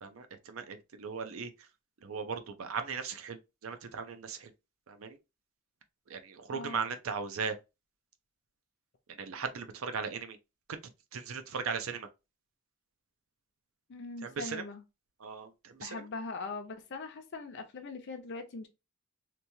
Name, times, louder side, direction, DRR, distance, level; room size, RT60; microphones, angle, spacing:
voice 1, 0.0-1.7 2.0-4.5 4.9-5.2 6.1-7.6 9.1-10.4 10.7-10.8 11.1-12.1 14.2-14.7 15.2-16.1, right 5 dB, 70° right, 0.5 m, -38 dB
voice 2, 6.5-6.8 13.9-14.8 15.8-18.7, left 3 dB, 55° left, 0.5 m, -41 dB
3.0 x 2.2 x 2.6 m
head